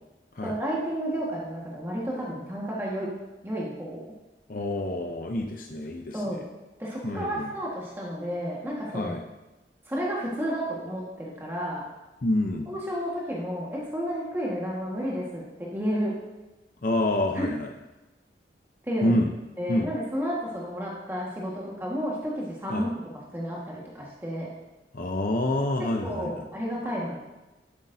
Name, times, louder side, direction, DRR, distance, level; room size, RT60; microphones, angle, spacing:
voice 1, 0.4-3.1 3.4-4.0 6.1-6.4 6.8-9.1 9.9-11.8 12.7-16.1 17.3-17.5 18.8-19.1 19.6-22.9 23.3-24.5 26.0-27.2, equal, 15° right, -5 dB, 1.5 m, -31 dB
voice 2, 4.5-6.4 7.0-7.5 8.9-9.2 12.2-12.7 16.8-17.7 19.0-19.3 19.7-19.9 22.7-22.9 24.9-26.5, left 1 dB, 50° left, 3 dB, 0.6 m, -27 dB
12.5 x 8.2 x 2.7 m, 1.1 s
head